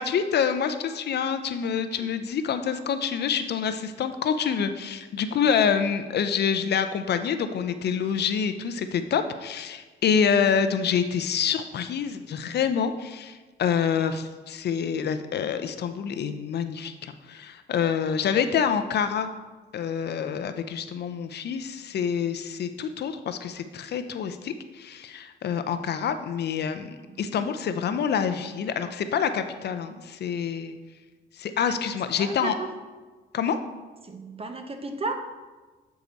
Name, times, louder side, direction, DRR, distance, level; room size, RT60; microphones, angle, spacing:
voice 1, 0.0-19.3 19.7-30.8 31.3-32.5 33.3-33.6, left 7 dB, 55° left, 9 dB, 0.5 m, -27 dB
voice 2, 27.0-27.5 32.2-32.7 34.0-35.1, right 3 dB, 30° right, 6 dB, 0.8 m, -34 dB
8.2 x 4.7 x 4.0 m, 1.3 s
cardioid pair, 90°, 20 cm